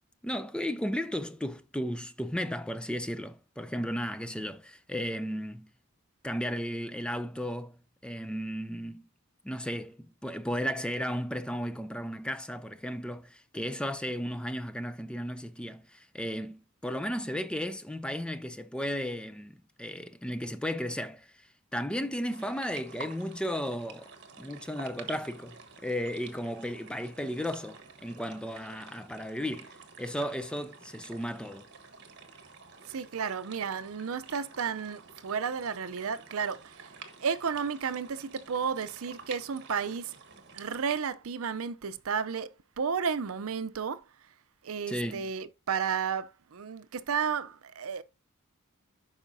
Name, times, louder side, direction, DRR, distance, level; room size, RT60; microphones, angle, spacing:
voice 1, 0.2-5.7 6.2-9.1 9.4-24.1 24.4-31.7 44.9-45.3, equal, 5° left, 0.3 m, -35 dB
sound 1, 22.3-41.0, right 5 dB, 55° right, 1.3 m, -49 dB
voice 2, 32.9-36.9 37.2-40.2 40.5-44.0 44.6-48.0, right 6 dB, 75° right, 0.5 m, -32 dB
11.5 x 4.9 x 2.6 m
head